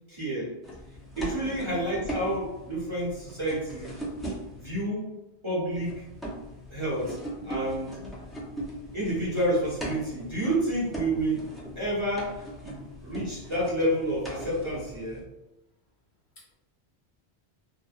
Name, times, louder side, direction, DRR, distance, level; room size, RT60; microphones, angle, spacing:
voice 1, 0.1-0.5 1.2-3.9 4.6-5.1 5.4-6.1 6.7-7.2 7.4-8.0 8.9-15.2, right 1 dB, 30° right, -7 dB, 0.7 m, -29 dB
sound 1, 0.6-4.7 5.7-15.2, right 1 dB, ahead, 0.4 m, -40 dB
voice 2, 1.3-1.6 7.4-8.1 16.4-16.5, left 3 dB, 60° left, -4 dB, 0.6 m, -49 dB
2.7 x 2.1 x 2.4 m, 0.98 s
omnidirectional pair, 1.1 m